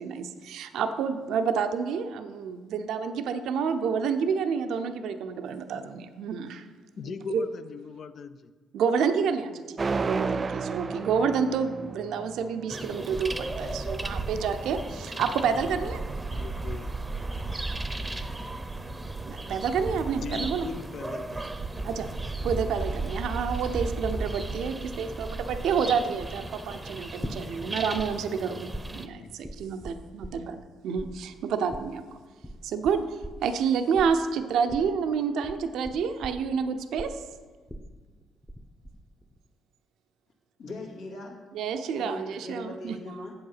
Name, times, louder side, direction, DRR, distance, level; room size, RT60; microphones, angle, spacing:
voice 1, 0.0-6.7 7.0-7.4 8.7-16.0 19.3-20.7 21.8-22.1 22.4-32.1 32.6-37.2 41.5-43.0, right 6 dB, 80° right, 8 dB, 0.6 m, -29 dB
voice 2, 7.0-8.5 16.3-16.9 20.2-21.4 29.2-29.4, left 6 dB, 55° left, 11 dB, 0.6 m, -39 dB
sound 1, 9.8-12.7, right 4 dB, 35° right, 0.3 m, -31 dB
sound 2, 12.7-29.1, right 2 dB, 15° right, 0.7 m, -35 dB
sound 3, 27.2-28.1 28.3-30.7 31.0-38.6 38.8-39.4, equal, 10° left, 0.9 m, -40 dB
voice 3, 40.6-41.4 41.9-43.3, left 2 dB, 85° left, -2 dB, 2.3 m, -40 dB
7.8 x 7.7 x 5.7 m, 1.4 s
cardioid pair, 90°, 0 cm